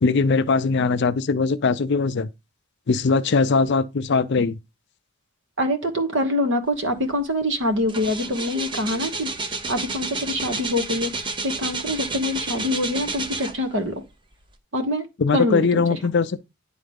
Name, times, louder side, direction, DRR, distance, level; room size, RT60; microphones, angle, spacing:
voice 1, 0.0-2.3 2.9-4.6 15.2-16.4, left 4 dB, 50° left, 0.5 m, -20 dB
voice 2, 5.6-14.0 14.7-15.1 15.3-16.0, left 1 dB, 55° right, 1.2 m, -25 dB
sound 1, 7.1-7.3 7.6-13.9 14.4-14.5, right 3 dB, 20° right, 0.6 m, -30 dB
10.0 x 3.8 x 3.6 m
head